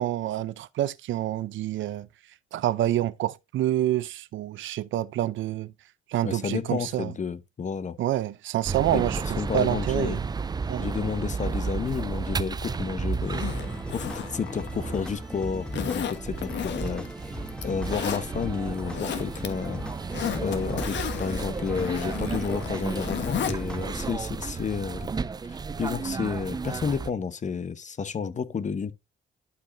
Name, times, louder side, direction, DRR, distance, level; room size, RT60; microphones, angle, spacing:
voice 1, 0.0-2.1 2.5-5.7 6.1-7.1 8.0-10.2 10.7-10.9, right 13 dB, 75° right, 0.6 m, -27 dB
voice 2, 6.2-8.0 8.9-9.0 9.4-10.3 10.8-13.4 13.9-17.1 17.6-19.8 20.4-25.1 25.5-28.9, left 6 dB, 40° left, 1.0 m, -31 dB
sound 1, 8.6-27.1, right 5 dB, 20° right, 0.4 m, -33 dB
Zipper (clothing), 13.2-15.1 15.7-17.1 17.5-18.2 18.7-19.5 19.8-23.6 23.9-24.0, left 8 dB, 65° left, 1.4 m, -33 dB
sound 2, 13.3-24.1, left 1 dB, 5° left, 1.3 m, -39 dB
11.5 x 5.2 x 2.7 m
cardioid pair, 90°, 20 cm